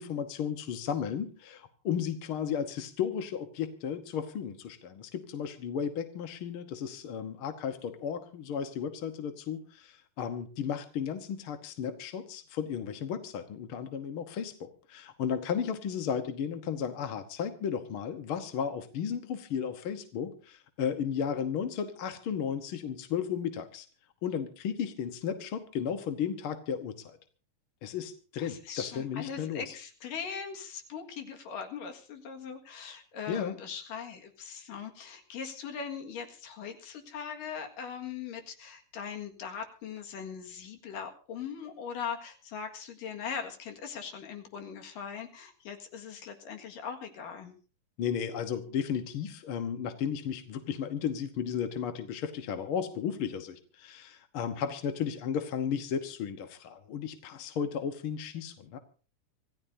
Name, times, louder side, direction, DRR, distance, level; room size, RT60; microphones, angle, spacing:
voice 1, 0.0-23.9 24.2-27.2 27.8-29.7 33.3-33.6 48.0-58.8, left 8 dB, 60° left, 8 dB, 1.4 m, -34 dB
voice 2, 28.4-47.5, left 7 dB, 80° left, 4 dB, 3.5 m, -40 dB
26.0 x 15.0 x 2.7 m, 0.38 s
omnidirectional pair, 3.8 m